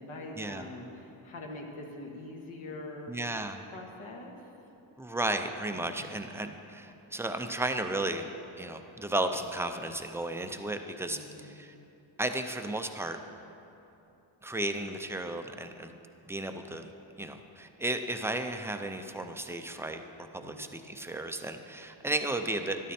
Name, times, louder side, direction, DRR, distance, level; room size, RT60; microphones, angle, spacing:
voice 1, 0.0-3.2 3.7-4.5 5.7-6.1 11.1-11.6 20.4-20.7, left 2 dB, 70° left, 0 dB, 1.6 m, -44 dB
voice 2, 3.1-3.6 5.0-8.3 8.6-11.7 12.2-13.2 14.4-15.9 16.3-16.9 17.2-20.0 20.3-22.9, right 2 dB, 5° right, 6 dB, 0.3 m, -34 dB
12.5 x 12.5 x 4.3 m, 2.9 s
wide cardioid pair, 170°, 49 cm